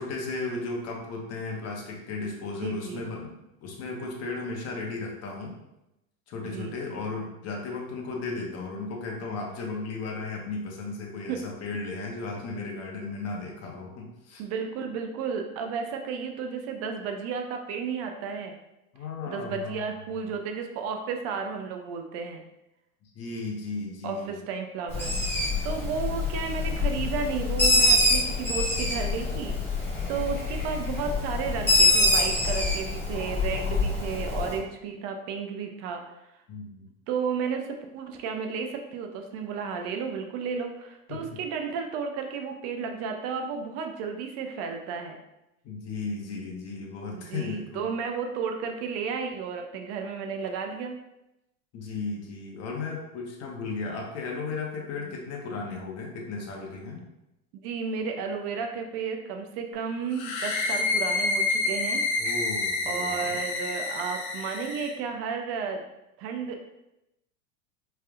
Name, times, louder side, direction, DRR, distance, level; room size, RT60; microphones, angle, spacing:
voice 1, 0.0-3.3 3.6-5.5 6.3-14.4 18.9-20.4 23.0-24.4 36.5-36.9 41.1-41.4 45.6-47.9 51.7-57.0 62.2-63.4, left 3 dB, 35° left, -1 dB, 1.1 m, -35 dB
voice 2, 2.5-3.1 6.4-6.8 11.3-11.4 14.4-18.5 19.3-22.4 24.0-25.2 25.6-36.0 37.1-45.2 47.2-51.0 55.0-55.1 57.6-62.0 62.9-65.8 66.2-66.6, right 6 dB, 40° right, 4 dB, 0.4 m, -33 dB
Bird, 24.9-34.6, left 2 dB, 5° left, 1.2 m, -25 dB
sound 1, 60.1-64.9, left 3 dB, 90° left, 0.9 m, -28 dB
4.4 x 3.4 x 2.4 m, 0.90 s
supercardioid pair, 125°, 41 cm